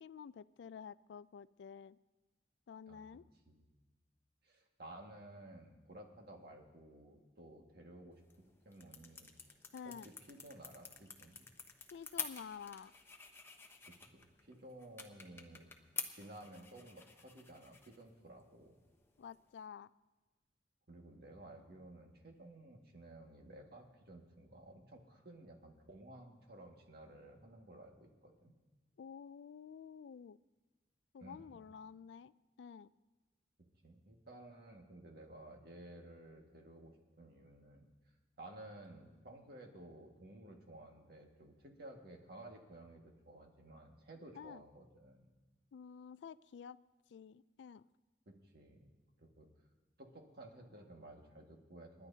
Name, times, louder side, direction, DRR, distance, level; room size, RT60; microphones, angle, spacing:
voice 1, 0.0-2.0 2.7-3.3 9.7-10.1 11.9-12.9 19.2-19.9 29.0-30.4 31.1-32.3 32.6-32.9 44.3-44.6 45.7-46.8 47.1-47.8, left 7 dB, 80° left, 18 dB, 0.3 m, -50 dB
voice 2, 4.4-9.3 9.9-11.5 13.9-15.7 16.1-18.8 20.9-28.5 31.2-31.5 33.8-37.9 38.4-45.3 48.3-48.9 49.2-49.5 50.0-52.1, right 1 dB, 60° right, 1 dB, 1.9 m, -55 dB
sound 1, 8.1-19.7, left 4 dB, 15° left, 0.9 m, -50 dB
29.5 x 11.0 x 2.8 m, 1.2 s
head